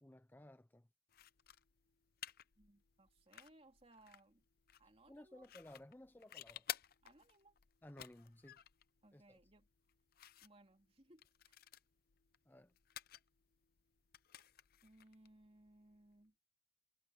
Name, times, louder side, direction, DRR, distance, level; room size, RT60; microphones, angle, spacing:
voice 1, 0.0-0.9 5.1-6.7 7.8-8.6 9.1-9.4 12.5-12.7, left 1 dB, 10° left, 0.6 m, -58 dB
sound 1, 1.1-16.2, left 11 dB, 55° left, 0.7 m, -55 dB
voice 2, 2.6-4.4 4.8-5.5 7.0-7.6 9.0-9.7 10.4-11.6 14.8-16.4, right 1 dB, 35° right, 2.6 m, -66 dB
head